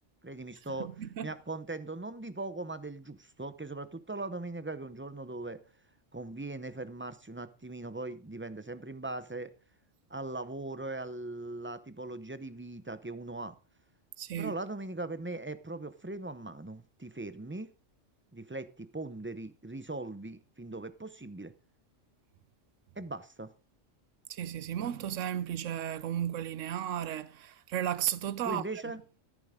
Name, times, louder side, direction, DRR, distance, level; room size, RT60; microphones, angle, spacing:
voice 1, 0.2-0.9 1.2-5.6 6.1-9.5 10.1-13.6 14.4-17.7 18.3-21.5 23.0-23.5 28.4-29.0, right 2 dB, 15° right, 0.6 m, -40 dB
voice 2, 0.8-1.3 14.2-14.5 24.3-28.8, right 10 dB, 85° right, 1.1 m, -34 dB
13.5 x 11.0 x 3.7 m
omnidirectional pair, 1.2 m